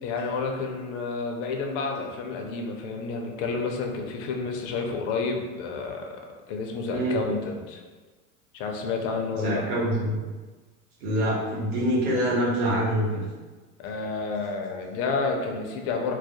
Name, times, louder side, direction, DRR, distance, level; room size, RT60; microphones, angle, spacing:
voice 1, 0.0-6.2 6.5-7.8 8.5-9.6 13.8-16.1, left 4 dB, 55° left, 2 dB, 0.5 m, -30 dB
voice 2, 9.3-10.2 11.0-13.2, equal, 90° right, -5 dB, 1.0 m, -25 dB
2.3 x 2.0 x 2.7 m, 1.3 s
supercardioid pair, 125°, 43 cm